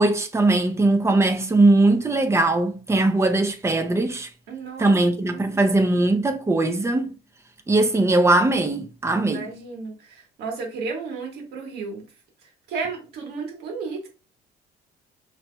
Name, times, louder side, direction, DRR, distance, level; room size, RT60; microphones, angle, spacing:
voice 1, 0.0-4.3 4.8-7.1 7.7-9.4, right 2 dB, 15° right, 0.6 m, -20 dB
voice 2, 4.5-5.0 5.2-6.2 9.2-12.0 12.4-14.1, right 4 dB, 75° right, 1.5 m, -34 dB
5.8 x 2.8 x 2.3 m
cardioid pair, 110°, 17 cm